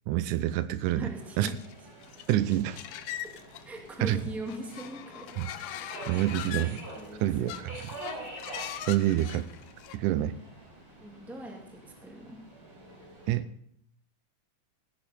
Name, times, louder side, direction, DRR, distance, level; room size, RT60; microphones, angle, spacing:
voice 1, 0.1-1.1 1.4-1.5 2.3-2.8 4.0-4.2 5.4-5.5 6.1-6.8 7.2-7.7 8.9-9.5 9.9-10.4 13.3-13.5, right 13 dB, 85° right, 14 dB, 2.1 m, -27 dB
voice 2, 0.9-1.5 3.6-5.3 5.8-6.2 6.9-7.5 11.0-12.4, right 1 dB, ahead, 1 dB, 1.5 m, -41 dB
Subway metro underground, 1.0-13.3, right 1 dB, 40° right, 5.4 m, -47 dB
sound 1, 1.4-4.1 4.5-7.1 7.4-10.0, left 11 dB, 75° left, 1.7 m, -41 dB
16.0 x 10.0 x 4.3 m, 0.68 s
omnidirectional pair, 3.5 m